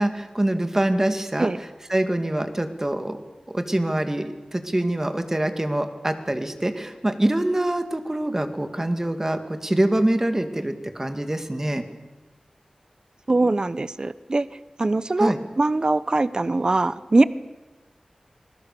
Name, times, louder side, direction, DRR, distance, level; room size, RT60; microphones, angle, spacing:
voice 1, 0.0-1.5 1.9-3.2 3.5-11.8 15.2-15.4, right 1 dB, 20° right, 8 dB, 2.4 m, -24 dB
voice 2, 13.3-14.5 14.8-17.2, right 2 dB, 40° right, 16 dB, 0.8 m, -22 dB
27.5 x 21.0 x 6.9 m, 1.1 s
wide cardioid pair, 75°, 2 cm